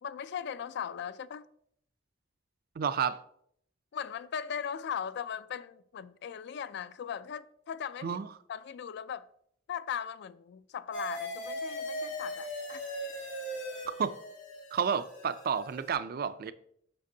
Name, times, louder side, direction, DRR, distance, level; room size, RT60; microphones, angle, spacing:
voice 1, 0.0-1.5 3.9-8.2 8.5-9.3 9.7-13.0, left 8 dB, 60° left, 0.3 m, -38 dB
voice 2, 2.8-3.2 8.0-8.3 14.0-14.1 14.7-16.5, right 7 dB, 50° right, 0.4 m, -31 dB
sound 1, 10.9-15.9, equal, 80° left, 2.5 m, -39 dB
7.5 x 5.9 x 2.7 m
head